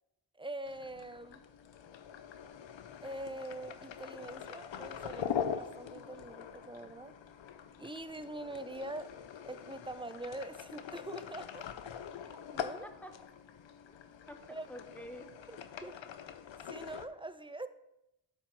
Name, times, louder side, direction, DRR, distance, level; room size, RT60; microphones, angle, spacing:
voice 1, 0.3-1.4 3.0-7.2 7.8-9.2 9.4-11.7 12.2-12.9 14.5-14.7 15.8-15.9 16.6-17.7, right 1 dB, 10° right, 11 dB, 0.4 m, -44 dB
sound 1, 0.7-17.1, left 8 dB, 85° left, 0.6 m, -43 dB
voice 2, 12.8-13.2 13.9-14.0 14.3-15.3 15.6-15.9, equal, 5° left, 6 dB, 1.0 m, -49 dB
12.0 x 4.6 x 4.6 m, 0.89 s
wide cardioid pair, 75°, 44 cm